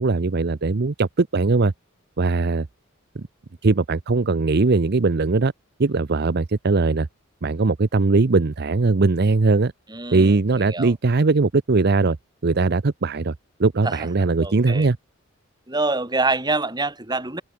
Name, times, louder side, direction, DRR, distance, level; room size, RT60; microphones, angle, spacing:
voice 1, 0.0-1.7 2.2-2.7 3.6-5.5 5.8-7.1 7.4-9.7 10.1-12.2 12.4-13.3 13.6-15.0, right 3 dB, 50° right, 0.7 m, -20 dB
voice 2, 9.9-10.9 13.8-14.9 15.7-17.4, right 3 dB, 20° right, 4.9 m, -26 dB
open air
head